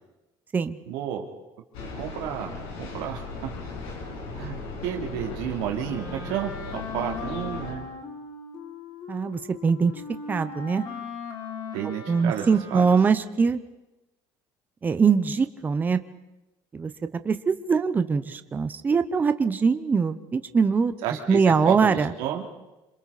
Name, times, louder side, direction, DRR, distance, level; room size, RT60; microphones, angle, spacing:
voice 1, 0.9-1.2 2.0-3.2 4.4-4.6 4.8-6.5 6.9-7.8 11.7-12.9 21.0-22.4, right 10 dB, 85° right, 1 dB, 3.1 m, -31 dB
sound 1, 1.7-7.7, left 3 dB, 85° left, 6.7 m, -37 dB
Wind instrument woodwind instrument, 5.8-13.3, left 4 dB, 50° left, 3.6 m, -39 dB
voice 2, 9.1-9.9 10.3-10.8 12.1-13.6 14.8-16.0 16.7-16.9 17.2-20.9 21.3-22.1, right 5 dB, 20° right, 10 dB, 0.8 m, -22 dB
27.0 x 26.5 x 4.2 m, 0.98 s
cardioid pair, 160°, 10 cm